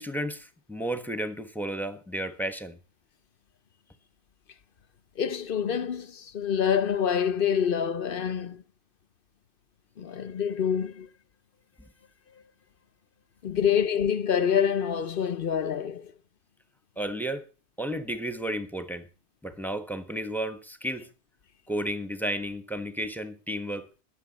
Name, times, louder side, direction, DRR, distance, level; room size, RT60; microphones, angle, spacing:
voice 1, 0.0-2.8 13.5-13.6 17.0-17.4 17.8-19.1 19.4-21.1 21.7-23.9, right 1 dB, ahead, 1.2 m, -32 dB
voice 2, 5.2-8.6 10.0-11.1 13.4-16.1, left 8 dB, 55° left, 0.8 m, -26 dB
19.5 x 7.2 x 4.2 m
omnidirectional pair, 1.2 m